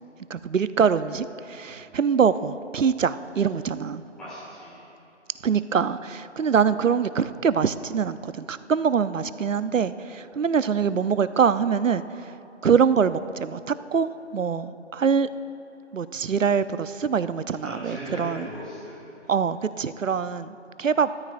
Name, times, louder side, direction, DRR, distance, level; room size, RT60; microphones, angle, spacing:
voice 1, 0.3-4.0 5.4-12.4 12.6-15.3 15.9-18.5 19.3-21.1, right 6 dB, 85° right, 14 dB, 0.7 m, -24 dB
voice 2, 4.2-4.8 17.6-19.0 20.0-20.1, equal, ahead, -11 dB, 2.0 m, -38 dB
29.5 x 13.0 x 2.5 m, 2.9 s
figure-of-eight pair, 170°, 37 cm